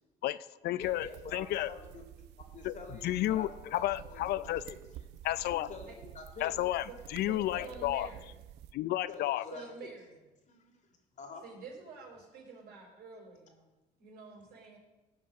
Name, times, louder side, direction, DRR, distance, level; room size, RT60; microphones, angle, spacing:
voice 1, 0.2-1.1 1.3-1.7 2.6-2.7 3.0-4.6 5.2-5.7 6.4-8.1 8.7-9.4, left 14 dB, 70° left, 16 dB, 0.4 m, -32 dB
voice 2, 0.7-2.0 2.4-4.8 5.5-6.5 7.5-7.7 9.1-9.9 10.5-11.4, left 4 dB, 45° left, 4 dB, 2.4 m, -47 dB
sound 1, 0.8-8.7, right 11 dB, 85° right, 0.5 m, -50 dB
voice 3, 7.6-8.3 9.5-10.2 11.4-13.7 14.0-14.8, right 4 dB, 70° right, 0 dB, 4.4 m, -48 dB
16.0 x 5.8 x 6.3 m, 1.1 s
cardioid pair, 110°, 17 cm